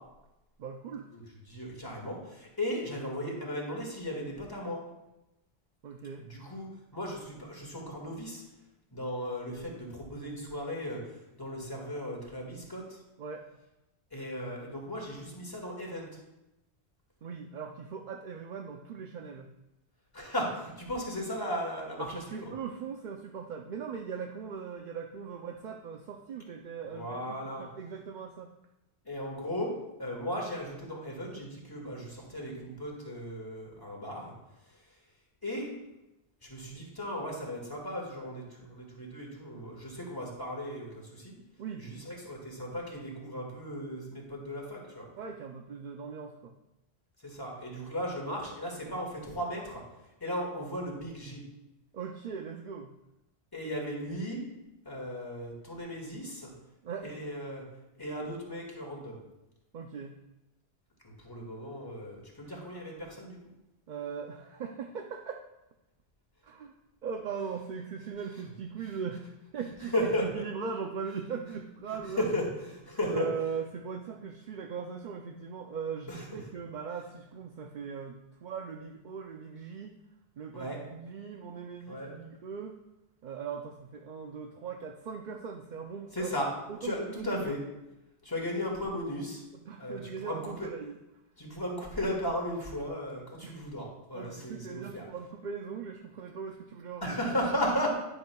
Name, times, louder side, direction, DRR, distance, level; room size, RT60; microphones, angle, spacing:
voice 1, 0.6-1.1 5.8-6.3 13.2-13.5 17.2-19.5 22.0-28.5 41.6-41.8 45.2-46.5 51.9-52.9 56.8-57.2 59.7-60.2 63.9-65.4 66.4-66.7 67.0-69.3 69.5-72.3 73.1-79.9 80.4-82.7 83.2-86.3 86.7-87.6 89.6-91.0 93.4-93.6 94.1-97.2, right 6 dB, 50° right, 3 dB, 0.6 m, -39 dB
voice 2, 1.1-4.8 6.3-6.7 6.9-8.4 8.9-11.0 11.4-12.8 14.1-16.1 20.1-22.5 26.9-27.6 29.1-29.7 30.0-34.3 35.4-35.7 36.4-41.3 41.8-45.1 47.2-49.8 50.2-51.4 53.5-54.4 54.9-56.5 57.0-57.6 58.0-59.2 61.0-63.4 69.9-70.4 71.9-73.3 76.1-76.2 80.5-80.8 81.9-82.1 86.1-86.5 86.8-87.6 88.2-89.4 89.8-90.7 91.4-95.0 97.0-97.9, equal, 20° left, -1 dB, 2.1 m, -36 dB
11.0 x 10.5 x 2.3 m, 0.94 s
omnidirectional pair, 1.1 m